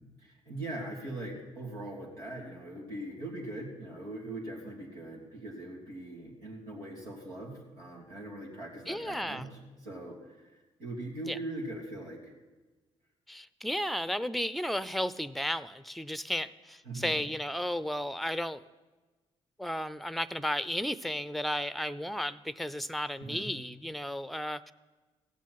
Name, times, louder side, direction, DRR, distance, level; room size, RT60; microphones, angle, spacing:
voice 1, 0.2-12.3 16.8-17.2 23.2-23.5, right 1 dB, 90° right, -5 dB, 3.4 m, -41 dB
voice 2, 8.9-9.5 11.3-11.4 13.3-18.6 19.6-24.7, equal, ahead, 17 dB, 0.6 m, -34 dB
16.0 x 7.3 x 9.6 m, 1.2 s
hypercardioid pair, 50°, 13 cm